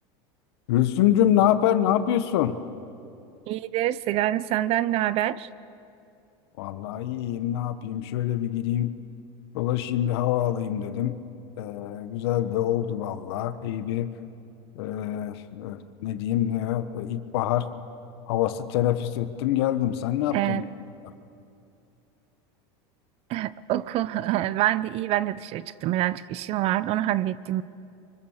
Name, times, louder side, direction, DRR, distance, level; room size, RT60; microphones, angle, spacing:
voice 1, 0.7-2.6 6.6-8.9 9.5-11.2 11.6-14.1 14.7-17.7 18.3-20.7, left 11 dB, 75° left, 11 dB, 1.3 m, -25 dB
voice 2, 3.5-5.5 20.3-20.7 23.3-27.6, right 14 dB, 50° right, 18 dB, 0.7 m, -26 dB
25.5 x 24.5 x 7.3 m, 2.6 s
supercardioid pair, 125°, 13 cm